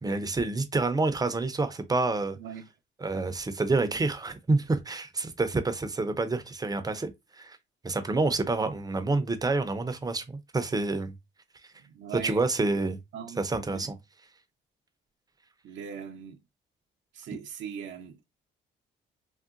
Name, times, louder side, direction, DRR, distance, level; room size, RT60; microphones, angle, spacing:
voice 1, 0.0-2.4 3.0-7.6 7.8-11.1 12.2-13.0 13.4-14.0, right 3 dB, 20° right, 0.5 m, -28 dB
voice 2, 11.8-12.4 13.1-13.4 13.7-13.8 15.6-16.4 17.1-18.3, right 8 dB, 70° right, 0.5 m, -40 dB
3.7 x 2.1 x 2.4 m
cardioid pair, 90°, 20 cm